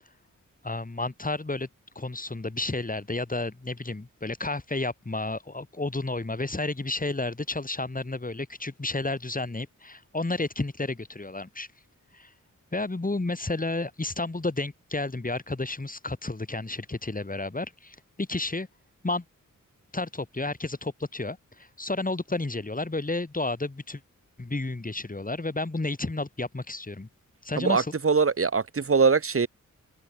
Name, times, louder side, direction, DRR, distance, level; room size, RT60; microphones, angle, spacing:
voice 1, 0.6-1.7 1.9-11.7 12.1-12.3 12.7-18.7 19.0-19.2 19.9-24.0 24.4-27.1 27.4-27.9, left 2 dB, 25° left, 3.1 m, -31 dB
voice 2, 27.6-29.5, right 5 dB, 40° right, 1.6 m, -22 dB
cardioid pair, 55°, 33 cm